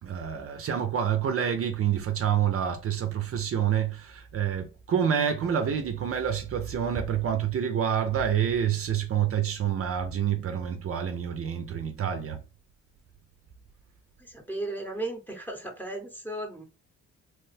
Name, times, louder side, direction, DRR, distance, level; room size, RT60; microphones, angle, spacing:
voice 1, 0.0-12.4, right 8 dB, 50° right, 0.6 m, -27 dB
voice 2, 14.2-16.6, right 2 dB, 5° left, 0.9 m, -35 dB
3.0 x 2.1 x 3.2 m
cardioid pair, 90°, 30 cm